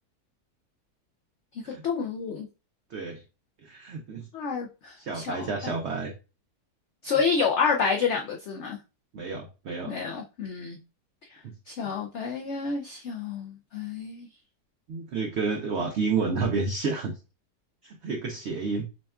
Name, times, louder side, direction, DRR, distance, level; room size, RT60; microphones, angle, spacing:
voice 1, 1.5-2.5 4.3-5.7 7.0-8.8 9.9-10.8 11.3-11.4 11.7-14.3, left 5 dB, 80° left, 0.6 m, -29 dB
voice 2, 2.9-3.2 3.6-4.2 5.0-6.1 9.1-10.0 11.4-11.5 14.9-17.2 17.8-18.9, right 4 dB, 80° right, 0.6 m, -30 dB
6.1 x 2.3 x 2.3 m
omnidirectional pair, 1.8 m